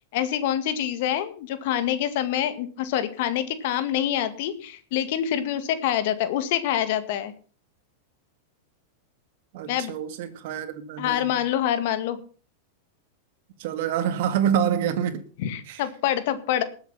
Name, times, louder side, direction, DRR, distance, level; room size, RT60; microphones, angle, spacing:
voice 1, 0.1-7.3 9.7-9.9 11.0-12.2 15.4-16.6, left 11 dB, 60° left, 2.0 m, -26 dB
voice 2, 9.5-11.3 13.6-15.2 15.7-15.8, right 8 dB, 65° right, 2.1 m, -26 dB
20.0 x 7.9 x 5.7 m
hypercardioid pair, 120°, 0 cm